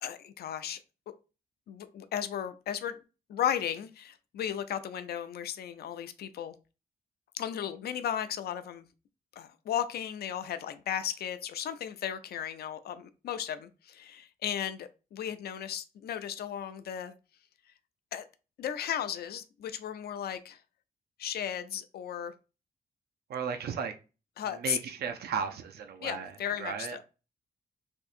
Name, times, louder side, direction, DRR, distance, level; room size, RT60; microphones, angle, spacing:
voice 1, 0.0-0.8 1.7-3.0 3.3-6.5 7.3-8.8 9.4-17.1 18.1-18.2 18.6-20.6 21.2-22.3 24.4-24.8 26.0-27.0, left 9 dB, 80° left, 0.4 m, -35 dB
voice 2, 23.3-23.9 24.6-26.3 26.6-27.0, right 6 dB, 90° right, 0.5 m, -34 dB
3.5 x 2.7 x 2.4 m
wide cardioid pair, 165°, 16 cm